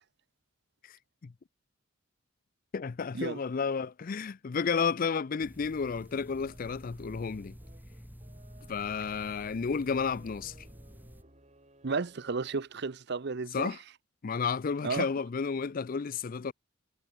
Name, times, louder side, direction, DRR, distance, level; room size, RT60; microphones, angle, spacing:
voice 1, 2.7-7.5 8.7-10.5 13.5-13.8 14.2-16.5, left 5 dB, 45° left, 0.4 m, -32 dB
sound 1, 5.4-11.2, equal, 10° right, 3.1 m, -50 dB
sound 2, 6.4-12.9, right 1 dB, 35° right, 6.7 m, -61 dB
voice 2, 11.8-13.8 14.8-15.1, right 4 dB, 55° right, 0.7 m, -33 dB
head